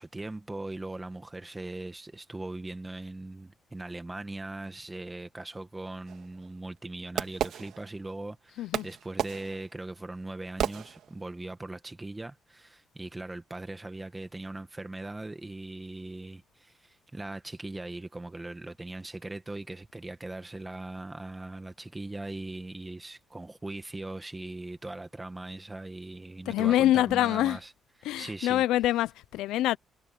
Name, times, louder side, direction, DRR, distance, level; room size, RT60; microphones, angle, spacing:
voice 1, 0.0-27.7 28.0-28.6, right 2 dB, 15° right, 1.8 m, -40 dB
Fireworks, 6.1-8.3 8.7-11.4, right 10 dB, 75° right, 1.8 m, -35 dB
voice 2, 26.5-27.6 28.0-29.8, left 14 dB, 90° left, 0.5 m, -25 dB
cardioid pair, 90°, 0 cm